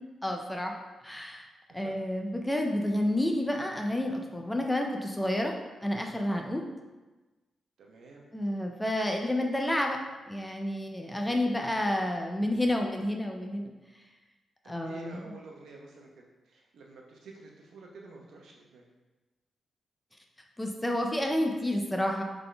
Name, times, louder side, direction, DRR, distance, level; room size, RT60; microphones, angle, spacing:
voice 1, 0.2-0.7 1.0-1.5 1.7-5.5 5.8-6.7 8.3-10.0 10.3-13.7 14.7-15.2 20.6-22.2, left 1 dB, 5° left, 2 dB, 0.4 m, -30 dB
voice 2, 7.8-8.2 14.6-18.8, right 3 dB, 85° right, -1 dB, 0.8 m, -50 dB
3.9 x 3.8 x 3.3 m, 1.2 s
wide cardioid pair, 170°, 0 cm